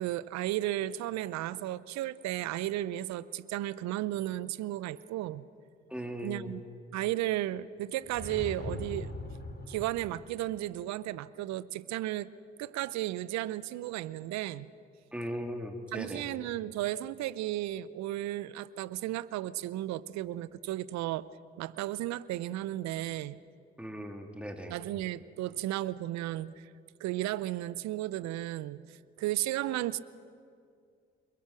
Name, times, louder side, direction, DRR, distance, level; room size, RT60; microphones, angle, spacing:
voice 1, 0.0-5.5 6.2-6.6 6.9-9.1 9.7-12.3 12.6-14.7 15.9-21.3 21.6-23.4 24.7-26.7 27.0-30.0, right 14 dB, 65° right, 18 dB, 0.7 m, -34 dB
voice 2, 5.9-6.6 15.1-16.3 23.8-24.8, equal, 5° right, 3 dB, 3.2 m, -38 dB
sound 1, 8.0-10.3, left 2 dB, 35° left, 3.8 m, -41 dB
29.0 x 21.5 x 6.2 m, 2.4 s
hypercardioid pair, 45°, 30 cm